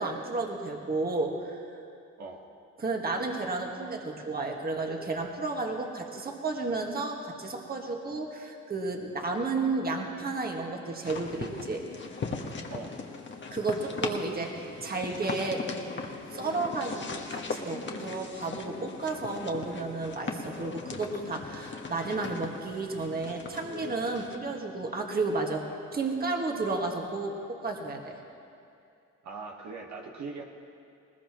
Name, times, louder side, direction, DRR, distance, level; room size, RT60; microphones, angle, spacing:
voice 1, 0.0-1.7 2.8-11.8 13.5-15.6 16.3-25.6 25.9-28.2, right 3 dB, 30° right, 1 dB, 1.8 m, -32 dB
sound 1, 11.0-24.4, left 4 dB, 40° left, 1.3 m, -39 dB
voice 2, 29.2-30.4, right 4 dB, 65° right, 0 dB, 1.6 m, -40 dB
20.5 x 19.5 x 3.1 m, 2.6 s
cardioid pair, 90°, 30 cm